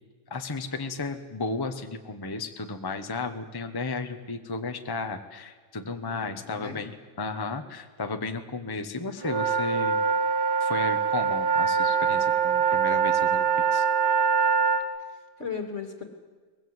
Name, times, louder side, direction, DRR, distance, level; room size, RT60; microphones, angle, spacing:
voice 1, 0.3-10.0 10.6-13.8, left 3 dB, 15° left, 6 dB, 1.1 m, -34 dB
voice 2, 6.0-6.8 15.1-16.0, left 5 dB, 45° left, 5 dB, 2.8 m, -37 dB
sound 1, 9.2-14.8, right 6 dB, 65° right, 2.6 m, -24 dB
23.5 x 20.5 x 8.0 m, 1.4 s
omnidirectional pair, 1.8 m